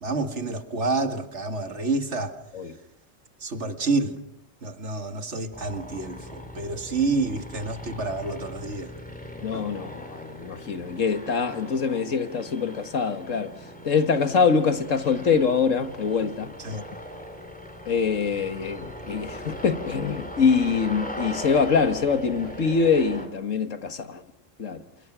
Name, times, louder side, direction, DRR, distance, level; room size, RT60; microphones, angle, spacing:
voice 1, 0.0-2.3 3.4-4.2 4.6-8.9 16.6-16.8, right 3 dB, 65° right, 2.2 m, -28 dB
sound 1, 5.5-23.3, equal, 5° left, 4.1 m, -40 dB
voice 2, 9.4-13.5 13.8-16.8 17.9-24.2 24.6-24.8, left 5 dB, 85° left, 2.0 m, -24 dB
28.5 x 28.0 x 6.1 m
omnidirectional pair, 1.3 m